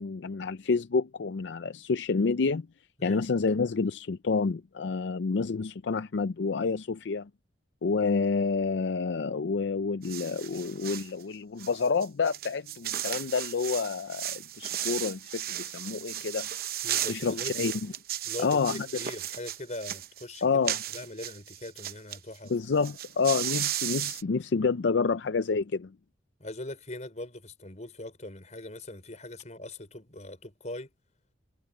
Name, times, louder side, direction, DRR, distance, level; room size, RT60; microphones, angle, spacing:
voice 1, 0.0-2.7 3.0-7.3 7.8-16.5 17.1-17.7 18.4-18.8 20.4-20.8 22.5-25.9, left 4 dB, 75° left, 0.5 m, -28 dB
sound 1, 10.0-11.1 11.6-22.2 22.5-22.6 22.8-24.2, right 12 dB, 55° right, 0.8 m, -35 dB
voice 2, 16.8-17.6 18.2-20.6 20.9-22.5 26.4-30.9, left 1 dB, 40° left, 5.5 m, -41 dB
head